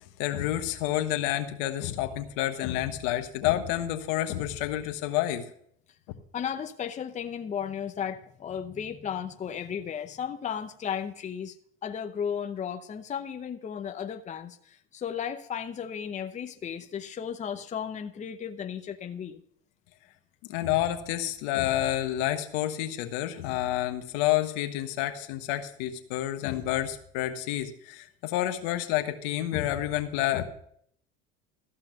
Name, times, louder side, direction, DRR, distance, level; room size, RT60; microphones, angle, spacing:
voice 1, 0.2-5.4 20.4-30.4, left 13 dB, 70° left, 7 dB, 1.3 m, -29 dB
voice 2, 6.3-11.5 11.8-19.4, left 8 dB, 25° left, 7 dB, 0.8 m, -35 dB
14.0 x 5.7 x 6.7 m, 0.66 s
supercardioid pair, 105°, 29 cm